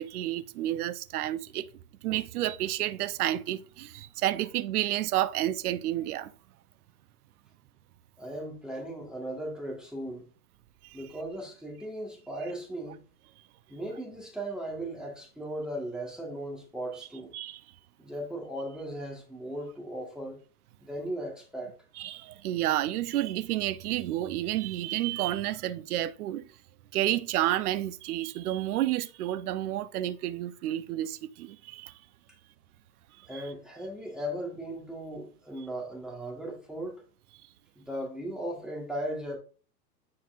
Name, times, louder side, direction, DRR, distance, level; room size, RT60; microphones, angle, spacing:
voice 1, 0.0-1.7 2.0-6.3 17.3-17.6 22.0-26.4 26.9-31.9 33.3-33.4, right 14 dB, 65° right, 0.7 m, -30 dB
voice 2, 8.2-10.2 10.9-13.0 13.7-17.3 18.0-20.4 20.8-21.7 33.3-36.9 37.8-39.4, right 1 dB, ahead, 1.4 m, -37 dB
9.5 x 4.2 x 2.4 m
hypercardioid pair, 125°, 49 cm